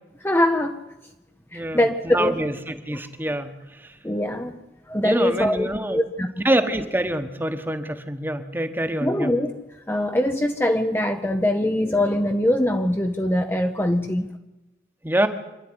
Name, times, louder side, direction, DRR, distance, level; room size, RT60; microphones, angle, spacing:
voice 1, 0.2-0.8 1.5-2.4 2.9-3.0 4.0-4.6 4.9-6.4 9.0-9.5 9.9-14.3, left 1 dB, 15° left, 5 dB, 0.8 m, -22 dB
voice 2, 1.5-3.5 5.0-6.0 6.4-9.3 15.0-15.3, right 1 dB, 10° right, 8 dB, 1.3 m, -25 dB
26.0 x 11.5 x 9.8 m, 1.0 s
head